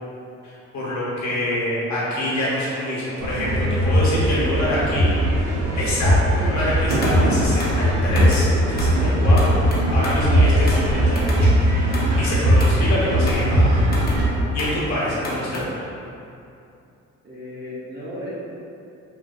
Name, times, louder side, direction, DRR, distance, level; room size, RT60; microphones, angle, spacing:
voice 1, 0.4-5.1 5.7-9.5 9.9-11.5 12.2-13.8 14.5-15.9, left 1 dB, 65° left, -7 dB, 0.9 m, -26 dB
voice 2, 1.7-2.0 4.3-5.1 17.2-18.4, left 1 dB, 30° right, -11 dB, 0.7 m, -37 dB
sound 1, 3.2-14.3, equal, 75° right, 0.5 m, -19 dB
sound 2, 6.6-15.6, left 1 dB, 30° left, 0.5 m, -34 dB
2.5 x 2.2 x 2.3 m, 2.6 s
cardioid pair, 90°, 30 cm